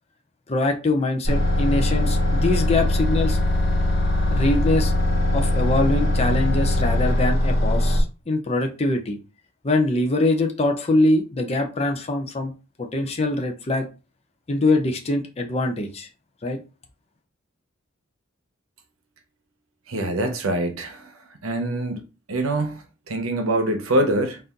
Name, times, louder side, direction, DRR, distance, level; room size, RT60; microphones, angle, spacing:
voice 1, 0.5-3.4 4.3-4.9 5.3-9.2 9.6-12.5 12.8-13.9 14.5-16.1 16.4-16.6, left 2 dB, 30° left, 0.6 m, -23 dB
sound 1, 1.2-8.0, left 1 dB, 50° left, 2.0 m, -21 dB
voice 2, 19.9-21.1 21.4-22.0 22.3-24.4, right 1 dB, 85° right, 0.9 m, -24 dB
4.1 x 2.6 x 3.7 m
head